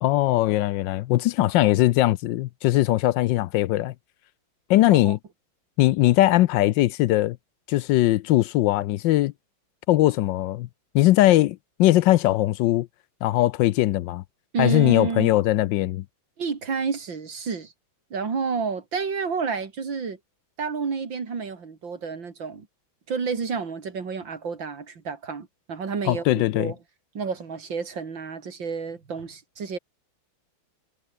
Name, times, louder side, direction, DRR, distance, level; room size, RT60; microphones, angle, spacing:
voice 1, 0.0-3.9 4.7-5.2 5.8-7.4 7.7-9.3 9.9-10.7 10.9-12.9 13.2-14.2 14.6-16.0 26.1-26.7, left 15 dB, 75° left, 1.2 m, -20 dB
voice 2, 14.5-15.3 16.4-17.7 18.1-20.2 20.6-22.7 23.1-26.8 27.2-29.8, right 5 dB, 65° right, 3.4 m, -30 dB
omnidirectional pair, 2.2 m